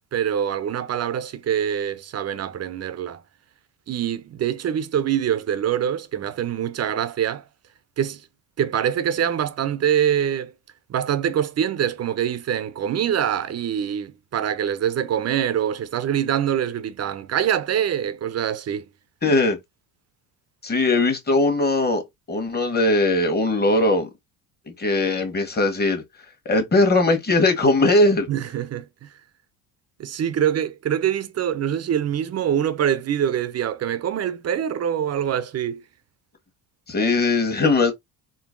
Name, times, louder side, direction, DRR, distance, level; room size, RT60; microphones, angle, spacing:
voice 1, 0.1-3.2 3.9-7.4 8.0-8.2 8.6-10.5 10.9-18.9 28.3-29.1 30.0-35.8, right 9 dB, 40° right, 0.7 m, -24 dB
voice 2, 19.2-19.6 20.6-24.1 24.8-26.0 26.4-28.3 36.9-37.9, left 2 dB, 25° left, 1.4 m, -20 dB
3.8 x 2.0 x 3.7 m
supercardioid pair, 80°, 41 cm